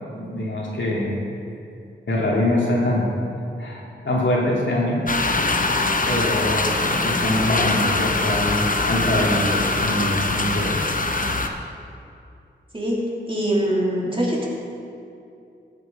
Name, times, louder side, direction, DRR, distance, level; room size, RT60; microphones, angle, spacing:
voice 1, 0.1-1.1 2.1-3.1 3.6-5.0 6.1-10.8, left 1 dB, 75° left, -4 dB, 2.5 m, -24 dB
sound 1, 5.1-11.5, left 3 dB, 45° left, 0.9 m, -22 dB
voice 2, 12.7-14.5, equal, 25° right, -5 dB, 3.0 m, -23 dB
14.5 x 6.9 x 5.4 m, 2.5 s
cardioid pair, 55°, 20 cm